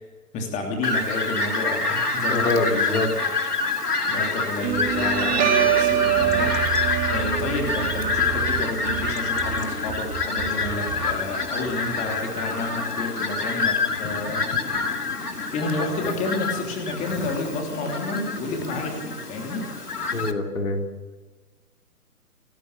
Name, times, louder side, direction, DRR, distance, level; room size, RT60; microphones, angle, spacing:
voice 1, 0.3-3.3 4.1-14.4 14.7-15.0 15.5-19.7, left 2 dB, 15° left, 2 dB, 3.2 m, -30 dB
Fowl, 0.8-20.3, left 3 dB, 80° left, 2.6 m, -27 dB
voice 2, 2.3-3.1 20.1-20.9, left 2 dB, 60° left, 3 dB, 3.9 m, -25 dB
Guitar, 4.6-11.6, right 11 dB, 15° right, 3.1 m, -26 dB
30.0 x 14.5 x 6.9 m, 1.3 s
figure-of-eight pair, 130°, 46 cm